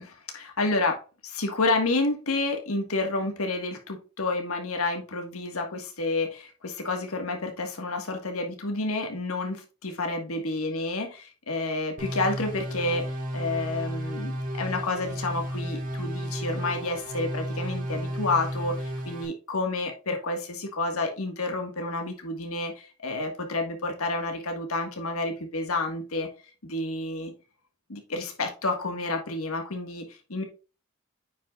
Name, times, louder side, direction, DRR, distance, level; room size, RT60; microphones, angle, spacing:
voice 1, 0.0-13.1 13.3-26.3 26.6-27.3 27.9-30.4, left 2 dB, 75° left, 4 dB, 1.7 m, -30 dB
sound 1, 12.0-19.2, equal, 35° right, 1.7 m, -33 dB
9.1 x 5.7 x 2.4 m, 0.33 s
head